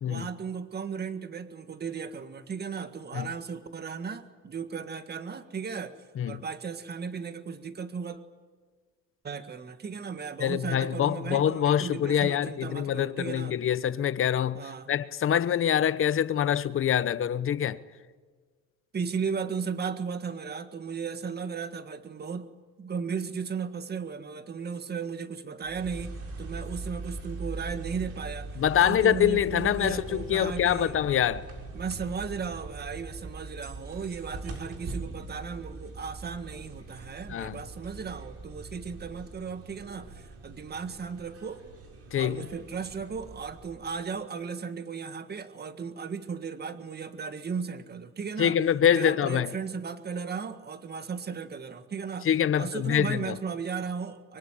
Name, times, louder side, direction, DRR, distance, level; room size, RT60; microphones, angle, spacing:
voice 1, 0.1-6.0 6.3-8.2 9.2-13.6 14.5-14.9 18.9-22.5 22.8-28.5 28.8-31.0 31.7-41.6 42.2-48.6 48.9-52.3 52.6-54.4, right 6 dB, 30° right, 1.8 m, -36 dB
voice 2, 10.4-14.6 14.9-17.8 28.6-31.5 37.3-37.6 42.1-42.5 48.4-49.5 52.2-53.4, left 9 dB, 40° left, 1.0 m, -25 dB
sound 1, 25.6-44.1, right 3 dB, 45° right, 6.7 m, -41 dB
24.5 x 24.0 x 10.0 m
cardioid pair, 140°, 34 cm